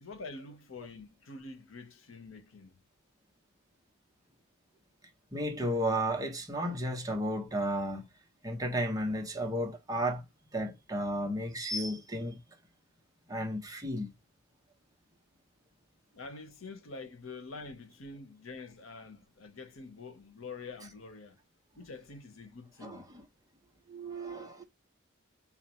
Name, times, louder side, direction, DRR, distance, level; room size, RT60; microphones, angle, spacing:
voice 1, 0.0-2.7 16.1-21.4 21.8-23.1, left 3 dB, 85° left, 0.9 m, -46 dB
voice 2, 5.3-8.0 8.4-10.2 10.5-12.4 13.3-14.1 22.8-23.2 23.9-24.6, equal, 20° right, 0.8 m, -33 dB
4.3 x 2.3 x 4.3 m
head